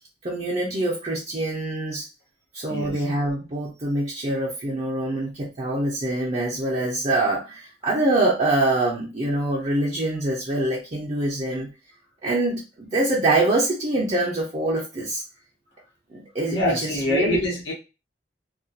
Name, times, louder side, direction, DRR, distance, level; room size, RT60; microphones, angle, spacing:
voice 1, 0.2-2.1 2.5-11.7 12.2-15.2 16.1-17.4, right 2 dB, 40° right, -4 dB, 0.5 m, -24 dB
voice 2, 2.7-3.0 16.5-17.7, left 1 dB, 80° left, -4 dB, 1.0 m, -25 dB
2.3 x 2.2 x 2.6 m, 0.29 s
head